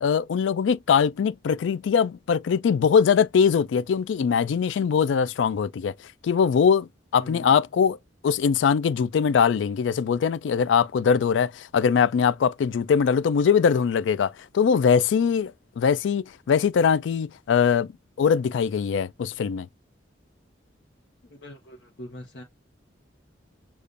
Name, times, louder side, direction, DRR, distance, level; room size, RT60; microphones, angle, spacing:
voice 1, 0.0-5.9 6.2-8.0 8.2-17.9 18.2-19.7, left 6 dB, 80° left, 0.3 m, -22 dB
voice 2, 7.2-7.5 21.3-22.4, left 1 dB, 65° left, 0.9 m, -42 dB
6.7 x 2.4 x 2.5 m
head